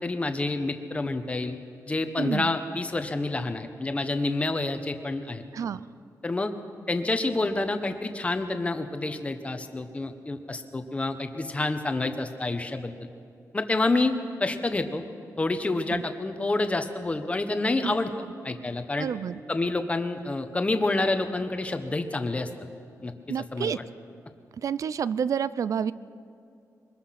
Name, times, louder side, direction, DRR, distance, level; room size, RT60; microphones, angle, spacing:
voice 1, 0.0-1.6 1.9-5.4 6.2-6.5 6.9-13.0 13.5-15.0 15.4-18.1 18.4-19.1 19.5-22.5 23.0-23.8, left 2 dB, 20° left, 8 dB, 1.2 m, -28 dB
voice 2, 2.2-2.5 5.5-5.9 15.9-16.0 17.8-18.0 19.0-19.4 23.3-23.8 24.6-25.9, right 7 dB, 60° right, 17 dB, 0.5 m, -29 dB
23.0 x 20.5 x 6.0 m, 2.5 s
wide cardioid pair, 160°, 6 cm